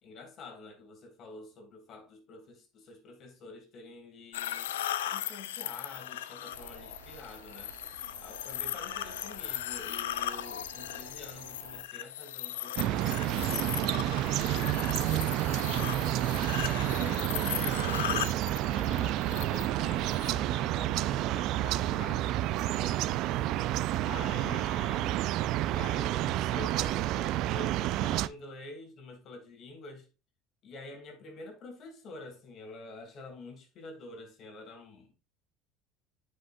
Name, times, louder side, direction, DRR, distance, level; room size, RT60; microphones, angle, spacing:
voice 1, 0.0-4.7 5.1-7.7 8.2-14.4 14.9-18.1 18.6-23.6 24.0-25.2 25.6-30.1 30.6-35.1, left 3 dB, 50° left, 2.8 m, -47 dB
sound 1, 4.3-20.3, left 12 dB, 90° left, 0.5 m, -37 dB
sound 2, 6.5-11.8, right 8 dB, 85° right, 0.8 m, -53 dB
sound 3, 12.8-28.3, right 14 dB, 60° right, 0.4 m, -30 dB
9.5 x 5.5 x 2.5 m
hypercardioid pair, 85°, 0 cm